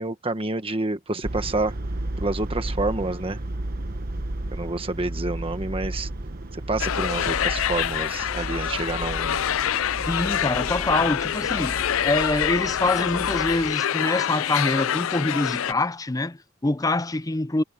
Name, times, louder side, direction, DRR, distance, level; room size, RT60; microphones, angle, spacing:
voice 1, 0.0-1.7 2.2-3.4 4.5-6.1 6.5-9.4, right 2 dB, 30° right, 1.4 m, -28 dB
sound 1, 1.2-13.7, right 1 dB, 45° right, 1.1 m, -33 dB
sound 2, 6.8-15.7, left 10 dB, 80° left, 0.4 m, -26 dB
voice 2, 10.1-17.6, left 2 dB, 15° left, 0.6 m, -25 dB
head